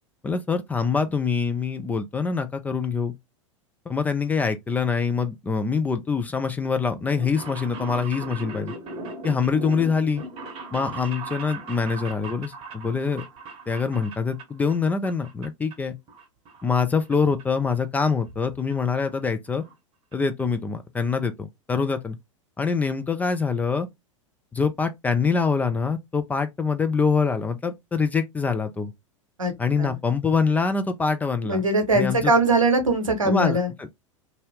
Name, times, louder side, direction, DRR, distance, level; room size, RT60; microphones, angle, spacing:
voice 1, 0.2-3.1 3.9-8.7 9.2-10.2 10.7-13.2 13.7-15.9 16.6-19.6 20.1-22.2 22.6-23.9 24.5-28.9 29.6-31.6 31.9-32.3 33.2-34.0, left 5 dB, 10° left, 0.3 m, -25 dB
sound 1, 7.0-14.8 15.0-15.7 16.1-17.1 17.4-17.5 18.4-18.5 18.7-18.8 19.1-19.2 19.5-19.7 20.1-20.2 20.4-20.5, right 3 dB, 35° right, 0.8 m, -38 dB
voice 2, 31.4-33.7, right 2 dB, 80° right, 0.8 m, -21 dB
2.7 x 2.4 x 3.0 m
figure-of-eight pair, 90°, 17 cm